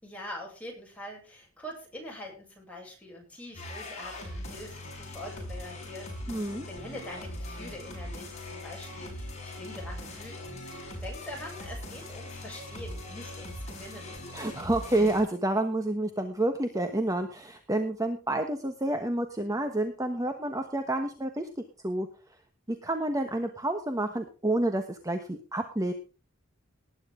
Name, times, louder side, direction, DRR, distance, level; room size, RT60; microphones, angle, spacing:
voice 1, 0.0-14.2, left 1 dB, 5° left, -2 dB, 7.7 m, -44 dB
sound 1, 3.5-15.2, left 1 dB, 35° left, 6.6 m, -40 dB
voice 2, 6.3-6.7 14.3-21.5 21.8-22.1 22.7-25.9, right 1 dB, 15° right, 6 dB, 1.3 m, -29 dB
19.0 x 9.8 x 3.8 m, 0.35 s
head